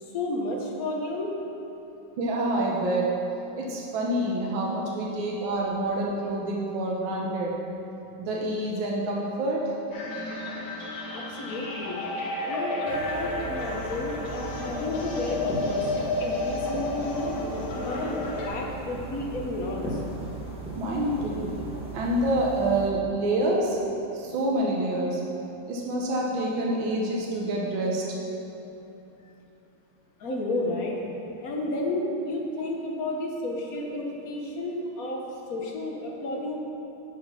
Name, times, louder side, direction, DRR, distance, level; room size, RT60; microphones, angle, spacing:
voice 1, 0.1-1.4 5.2-5.3 11.1-12.0 12.4-17.3 17.7-20.0 30.2-35.2 35.5-36.6, left 1 dB, 55° left, -1 dB, 1.3 m, -32 dB
voice 2, 2.2-3.1 3.6-7.6 8.2-9.8 20.8-21.5 21.9-23.8 24.1-25.2 25.7-28.0, right 1 dB, 80° right, -2 dB, 1.7 m, -27 dB
sound 1, 9.9-18.5, left 2 dB, 85° left, 1.9 m, -31 dB
sound 2, 12.8-22.9, right 2 dB, 5° right, 1.1 m, -38 dB
10.0 x 5.0 x 5.6 m, 2.9 s
omnidirectional pair, 2.1 m